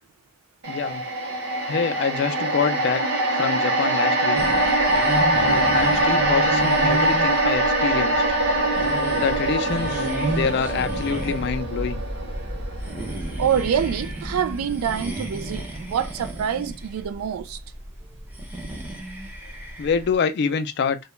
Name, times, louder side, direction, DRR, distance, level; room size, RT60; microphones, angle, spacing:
sound 1, 0.6-15.0 15.3-15.5, right 1 dB, 55° right, 0.7 m, -23 dB
voice 1, 0.7-1.0 1.7-4.5 5.4-8.2 9.2-12.0 19.8-21.0, left 6 dB, 50° left, 0.3 m, -26 dB
sound 2, 4.3-20.1, right 1 dB, 10° right, 0.5 m, -33 dB
voice 2, 4.7-5.8 12.6-12.9 13.3-17.6, right 8 dB, 90° right, 0.3 m, -27 dB
2.3 x 2.1 x 2.9 m
head